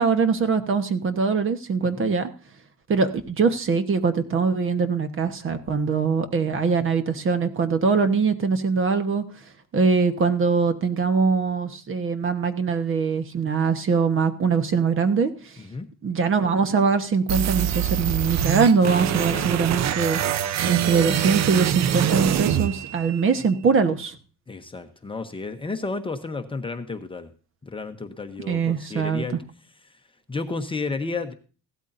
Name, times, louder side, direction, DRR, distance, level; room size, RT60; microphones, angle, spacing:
voice 1, 0.0-2.3 2.9-9.2 9.7-15.3 16.0-20.2 20.6-24.1 28.5-29.2, right 5 dB, 40° right, 9 dB, 1.2 m, -22 dB
sound 1, 17.3-23.3, right 10 dB, 55° right, 0.6 m, -24 dB
voice 2, 19.1-19.7 24.5-27.3 27.6-29.4 30.3-31.3, left 3 dB, 15° left, 6 dB, 0.8 m, -32 dB
16.0 x 12.5 x 2.6 m, 0.36 s
cardioid pair, 165°, 32 cm